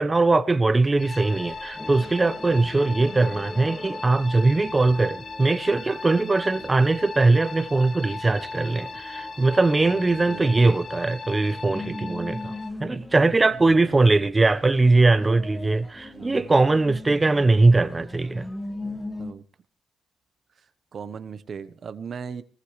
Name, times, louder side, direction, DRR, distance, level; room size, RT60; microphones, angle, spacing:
voice 1, 0.0-12.5 12.8-18.4, right 3 dB, 20° right, 1.1 m, -21 dB
sound 1, 1.0-12.7, left 4 dB, 40° left, 1.2 m, -38 dB
sound 2, 1.1-19.3, left 2 dB, 10° left, 2.0 m, -40 dB
voice 2, 9.8-10.7 11.8-12.3 13.5-14.0 15.5-15.7 16.0-16.5 19.2-19.4 20.6-20.7 20.9-22.4, right 6 dB, 50° right, 1.1 m, -39 dB
20.5 x 19.0 x 3.3 m
cardioid pair, 90°, 0 cm